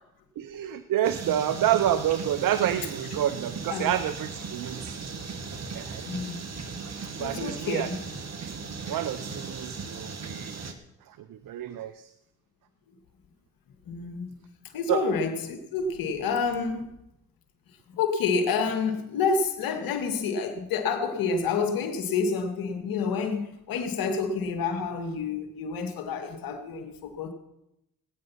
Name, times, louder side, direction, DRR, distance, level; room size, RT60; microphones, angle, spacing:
voice 1, 0.4-5.0 5.7-6.0 7.2-7.9 8.9-10.6 11.1-12.1 14.9-15.0, right 11 dB, 70° right, 0.8 m, -28 dB
sound 1, 1.0-10.7, right 4 dB, 50° right, 1.9 m, -37 dB
voice 2, 6.0-6.4 7.2-8.0 13.9-14.4 14.7-17.0 17.9-27.3, left 5 dB, 80° left, 2.0 m, -28 dB
18.5 x 9.3 x 5.9 m
supercardioid pair, 50°, 34 cm